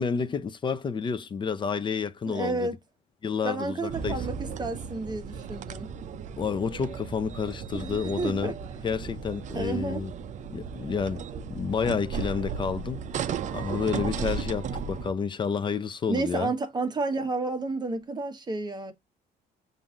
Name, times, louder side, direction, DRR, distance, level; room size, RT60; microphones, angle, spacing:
voice 1, 0.0-2.7 3.2-4.2 6.4-8.5 8.8-10.1 10.5-11.2 11.5-13.0 13.5-16.5, left 6 dB, 30° left, 0.5 m, -30 dB
voice 2, 2.3-2.8 3.4-5.9 7.7-8.6 9.5-10.0 16.1-18.9, right 3 dB, 25° right, 1.1 m, -31 dB
sound 1, 3.9-15.1, right 6 dB, 45° right, 0.5 m, -35 dB
7.0 x 2.6 x 2.4 m
cardioid pair, 110°, 17 cm